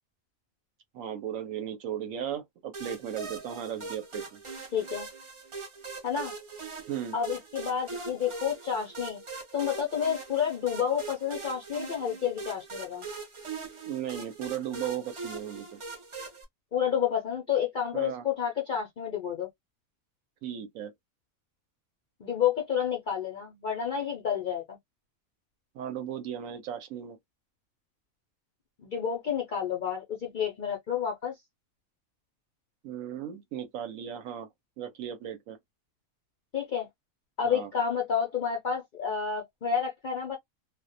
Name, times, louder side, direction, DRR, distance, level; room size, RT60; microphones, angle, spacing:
voice 1, 0.9-4.4 6.9-7.2 13.9-15.8 17.9-18.3 20.4-20.9 25.7-27.2 32.8-34.5 34.8-35.6 37.4-37.7, right 9 dB, 75° right, 1.0 m, -36 dB
sound 1, 2.7-16.4, right 4 dB, 45° right, 0.4 m, -41 dB
voice 2, 4.7-5.1 6.0-6.3 7.1-9.2 9.5-13.1 16.7-19.5 22.2-24.8 28.8-31.4 36.5-36.9 37.4-40.4, left 8 dB, 60° left, 0.5 m, -30 dB
2.4 x 2.1 x 2.5 m
omnidirectional pair, 1.4 m